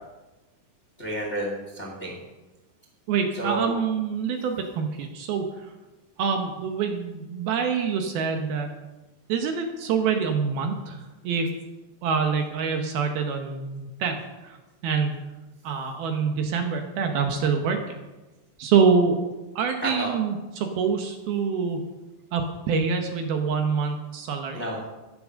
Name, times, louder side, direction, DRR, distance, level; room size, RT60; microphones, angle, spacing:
voice 1, 1.0-2.2 3.3-3.7 19.8-20.1 24.5-24.8, right 1 dB, 25° left, 0 dB, 1.7 m, -30 dB
voice 2, 3.1-5.5 6.2-8.7 9.3-11.5 12.0-14.6 14.8-15.1 15.6-17.8 18.6-21.8 22.3-24.6, right 6 dB, 70° right, 4 dB, 2.7 m, -26 dB
13.5 x 11.0 x 6.4 m, 1.1 s
omnidirectional pair, 5.1 m